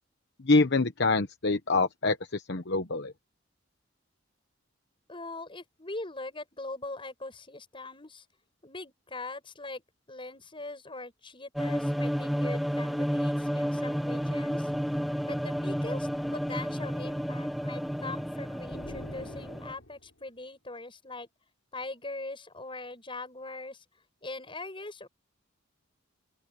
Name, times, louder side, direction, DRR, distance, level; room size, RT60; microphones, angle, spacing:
voice 1, 0.4-3.1, left 3 dB, 60° left, 1.0 m, -25 dB
voice 2, 5.1-8.2 8.6-14.7 15.2-21.3 21.7-23.8 24.2-25.1, left 2 dB, 25° left, 7.0 m, -41 dB
sound 1, 11.6-19.7, equal, ahead, 0.7 m, -31 dB
sound 2, 18.6-20.2, left 1 dB, 75° left, 6.7 m, -46 dB
open air
head